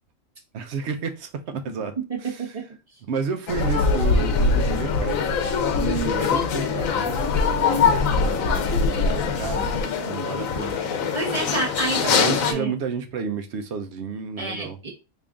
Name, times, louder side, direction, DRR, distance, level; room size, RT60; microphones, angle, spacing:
voice 1, 0.5-2.6 3.1-5.2 5.7-11.4 12.0-14.8, right 5 dB, 65° right, 0.9 m, -31 dB
voice 2, 2.0-2.7 11.1-12.7 14.4-14.9, right 3 dB, 30° right, 1.1 m, -29 dB
sound 1, 3.5-12.5, left 5 dB, 90° left, 1.1 m, -22 dB
3.7 x 2.5 x 3.5 m
omnidirectional pair, 1.4 m